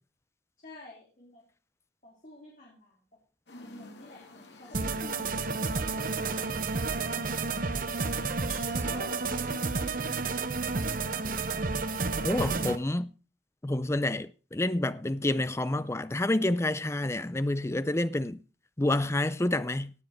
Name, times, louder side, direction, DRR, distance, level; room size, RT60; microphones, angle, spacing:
voice 1, 0.6-1.4 2.0-3.0 3.5-7.2 8.3-11.3, left 1 dB, 45° left, 3.9 m, -51 dB
sound 1, 3.5-10.1, left 3 dB, 80° left, 2.3 m, -51 dB
sound 2, 4.7-12.8, right 4 dB, 50° right, 0.9 m, -31 dB
voice 2, 12.2-13.1 13.6-18.4 18.8-19.9, left 1 dB, 15° left, 0.5 m, -28 dB
18.0 x 7.5 x 4.5 m
head